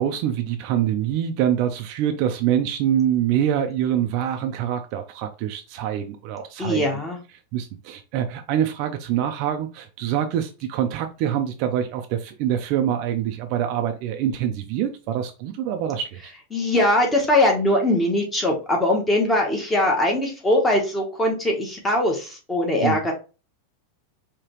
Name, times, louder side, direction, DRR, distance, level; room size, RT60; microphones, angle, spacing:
voice 1, 0.0-6.8 7.5-16.3 22.8-23.0, right 10 dB, 35° right, 0.4 m, -25 dB
voice 2, 6.6-7.2 16.5-23.1, left 1 dB, 10° left, 1.0 m, -21 dB
4.9 x 2.9 x 2.9 m
supercardioid pair, 175°, 0 cm